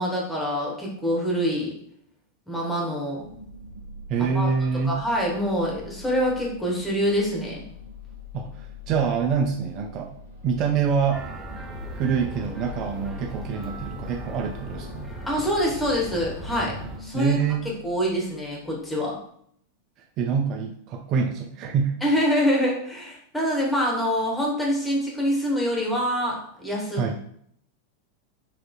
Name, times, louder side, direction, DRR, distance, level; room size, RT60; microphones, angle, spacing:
voice 1, 0.0-1.8 2.5-3.2 4.3-4.5 4.8-7.6 15.3-17.4 17.8-19.2 22.0-27.0, equal, 5° left, -3 dB, 1.2 m, -25 dB
sound 1, 3.2-19.1, left 3 dB, 65° right, 0.7 m, -43 dB
voice 2, 4.1-5.0 8.4-10.1 10.4-11.3 11.9-15.1 17.1-17.7 20.2-22.0 27.0-27.2, right 6 dB, 35° right, 2 dB, 0.4 m, -25 dB
sound 2, 11.1-17.0, right 2 dB, 15° right, 0.8 m, -38 dB
4.2 x 3.1 x 2.4 m, 0.67 s
figure-of-eight pair, 90°, 0 cm